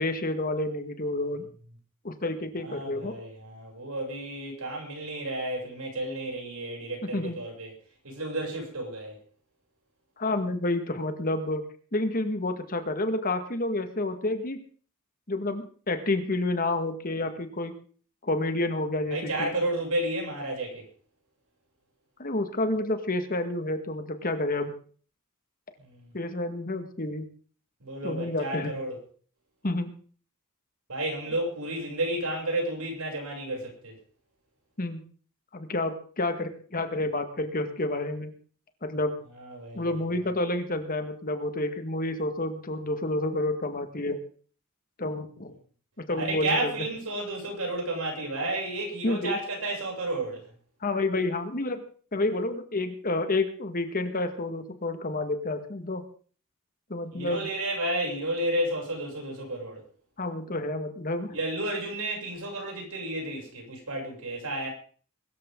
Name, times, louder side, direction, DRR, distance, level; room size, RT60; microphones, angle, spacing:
voice 1, 0.0-1.5 2.0-3.2 7.1-7.4 10.2-11.6 11.9-14.6 15.3-17.7 18.2-19.5 22.2-24.7 26.1-27.3 28.0-28.7 29.6-29.9 34.8-35.0 35.5-38.3 38.8-39.1 39.7-44.2 45.0-45.5 46.0-46.7 49.0-49.4 50.8-51.8 52.1-56.0 56.9-57.5 60.2-61.4, left 2 dB, 40° left, 1.9 m, -29 dB
voice 2, 2.6-7.7 8.0-9.2 19.1-20.8 25.8-26.1 27.8-29.0 30.9-34.0 39.3-40.0 46.2-50.5 57.1-59.8 61.3-64.7, right 1 dB, 80° right, 7.5 m, -32 dB
22.5 x 13.5 x 3.9 m
head